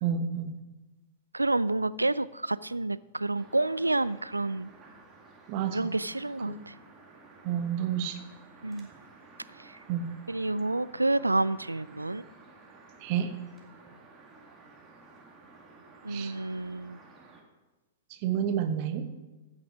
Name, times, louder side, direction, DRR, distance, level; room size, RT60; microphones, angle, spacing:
voice 1, 0.0-0.6 5.5-5.9 6.5-6.6 7.4-8.2 9.9-10.1 13.0-13.3 16.1-16.3 18.1-19.1, right 8 dB, 45° right, 9 dB, 1.1 m, -30 dB
voice 2, 1.3-4.7 5.7-6.7 8.6-8.9 9.6-9.7 10.3-12.2 16.0-17.0, right 2 dB, 90° right, 18 dB, 0.3 m, -29 dB
sound 1, 3.3-17.4, right 3 dB, 20° right, 2.1 m, -54 dB
15.0 x 6.1 x 5.0 m, 1.1 s
figure-of-eight pair, 105°, 0 cm